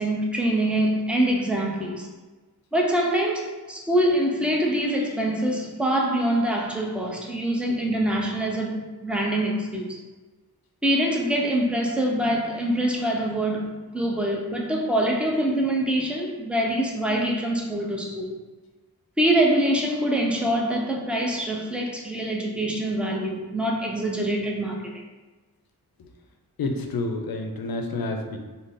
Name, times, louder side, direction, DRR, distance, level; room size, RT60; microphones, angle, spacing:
voice 1, 0.0-2.1 2.7-8.7 9.0-10.0 10.8-18.4 19.2-24.9, right 1 dB, 5° right, -1 dB, 0.6 m, -24 dB
voice 2, 26.6-28.4, left 2 dB, 65° left, 3 dB, 0.6 m, -29 dB
3.8 x 2.0 x 3.6 m, 1.2 s
cardioid pair, 65°, 38 cm